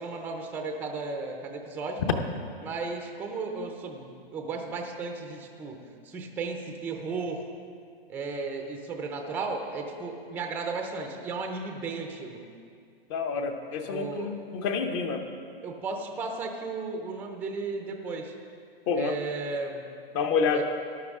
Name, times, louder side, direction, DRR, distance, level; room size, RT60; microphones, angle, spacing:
voice 1, 0.0-2.0 2.6-7.4 8.1-12.4 13.3-13.5 13.9-14.4 15.6-18.3 18.9-19.9 20.5-20.6, right 4 dB, 5° right, 3 dB, 0.6 m, -35 dB
voice 2, 13.1-15.2 18.9-19.1 20.1-20.6, left 5 dB, 30° left, 6 dB, 0.9 m, -28 dB
14.5 x 11.0 x 3.6 m, 2.3 s
hypercardioid pair, 145°, 30 cm